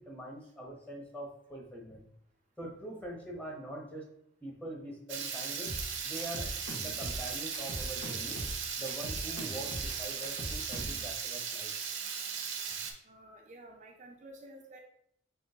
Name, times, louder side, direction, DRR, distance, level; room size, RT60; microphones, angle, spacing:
voice 1, 0.0-2.0 2.6-4.1 4.4-5.7 6.0-6.5 6.8-8.4 8.8-11.7, right 1 dB, 10° left, -1 dB, 1.0 m, -43 dB
Water tap faucet / Liquid, 5.1-12.9, right 6 dB, 75° right, 0.7 m, -37 dB
sound 1, 5.7-11.0, equal, 80° left, 1.6 m, -40 dB
voice 2, 13.0-14.8, right 1 dB, 40° right, 1 dB, 0.5 m, -52 dB
5.9 x 3.1 x 2.7 m, 0.69 s
head